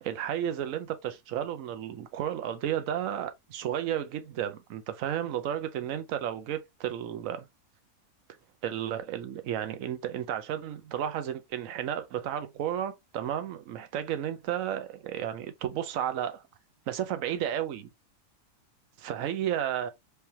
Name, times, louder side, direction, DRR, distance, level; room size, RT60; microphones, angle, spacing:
voice 1, 0.0-7.5 8.6-16.4 16.9-17.9 19.0-19.9, right 10 dB, 65° right, 1.0 m, -32 dB
3.3 x 3.3 x 2.7 m
omnidirectional pair, 1.6 m